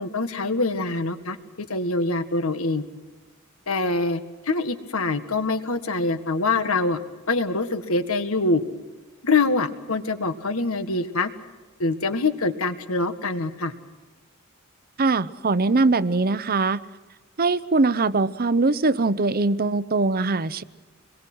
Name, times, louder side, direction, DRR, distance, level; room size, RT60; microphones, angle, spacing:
voice 1, 0.0-2.8 3.7-7.0 7.3-8.6 9.2-11.3 11.8-13.7, left 3 dB, 75° left, 9 dB, 1.8 m, -24 dB
voice 2, 15.0-16.8 17.4-20.6, right 3 dB, 45° right, 15 dB, 0.8 m, -22 dB
26.5 x 22.0 x 6.3 m, 1.3 s
head